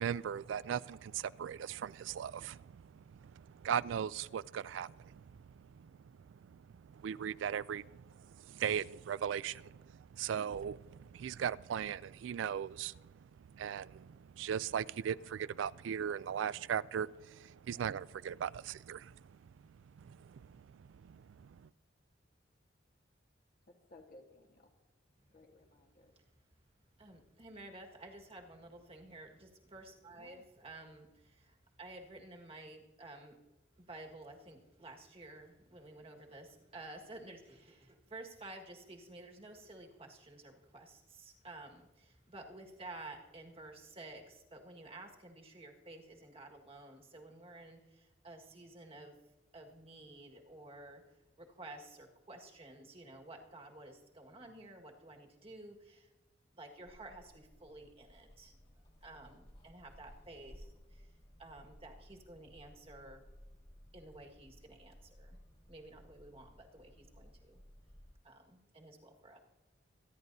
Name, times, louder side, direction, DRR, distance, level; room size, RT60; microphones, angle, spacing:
voice 1, 0.0-5.2 5.6-5.9 6.2-13.1 13.5-19.2 20.0-21.7, right 8 dB, 75° right, 20 dB, 0.3 m, -39 dB
voice 2, 23.7-24.7 25.3-26.1 30.1-30.5, left 2 dB, 50° left, 2 dB, 1.4 m, -59 dB
voice 3, 27.0-33.4 33.8-49.2 49.5-51.0 51.4-56.1 56.5-58.5 59.0-61.1 61.4-63.2 63.9-65.4 65.7-67.6 68.2-69.4, right 2 dB, 30° right, 1 dB, 1.7 m, -52 dB
sound 1, 56.8-68.1, equal, 30° left, 2.2 m, -59 dB
25.0 x 10.5 x 2.7 m, 1.1 s
head